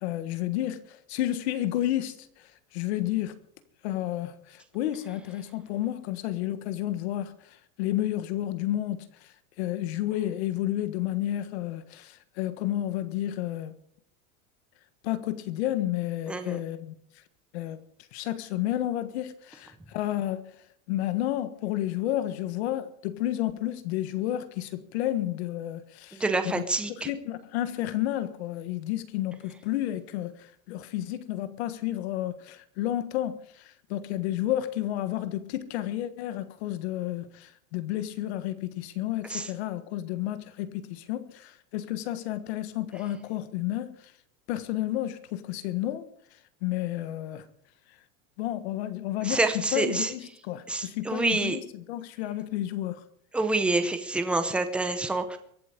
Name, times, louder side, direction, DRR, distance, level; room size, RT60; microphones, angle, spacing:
voice 1, 0.0-2.3 2.7-3.3 3.8-9.3 9.6-13.7 15.0-16.9 17.5-17.8 18.1-20.5 20.9-26.6 27.1-44.0 44.5-46.1 46.6-47.5 48.4-53.0, left 13 dB, 50° left, 1.5 m, -31 dB
voice 2, 16.3-16.6 26.2-27.1 39.3-39.5 49.2-50.1 50.7-51.6 53.3-55.4, right 2 dB, 5° right, 0.6 m, -27 dB
23.0 x 8.0 x 5.3 m
supercardioid pair, 180°, 41 cm